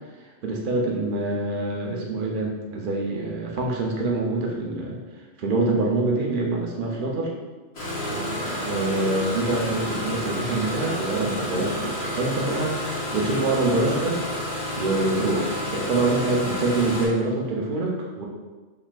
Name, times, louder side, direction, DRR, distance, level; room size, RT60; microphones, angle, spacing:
voice 1, 0.4-5.0 5.4-7.3 8.1-14.2 14.8-18.3, right 2 dB, 50° right, -1 dB, 0.7 m, -25 dB
Engine starting, 7.7-17.1, left 1 dB, 55° left, 1.4 m, -30 dB
3.9 x 3.4 x 2.4 m, 1.3 s
omnidirectional pair, 1.3 m